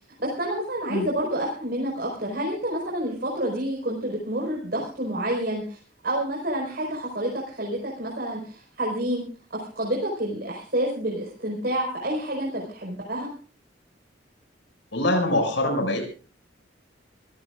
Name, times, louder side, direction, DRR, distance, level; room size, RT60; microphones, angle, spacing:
voice 1, 0.2-5.8 6.0-9.2 9.5-13.3, right 1 dB, 55° right, -2 dB, 5.1 m, -28 dB
voice 2, 14.9-16.1, left 1 dB, 70° left, 4 dB, 6.5 m, -24 dB
25.5 x 16.5 x 2.6 m, 0.40 s
head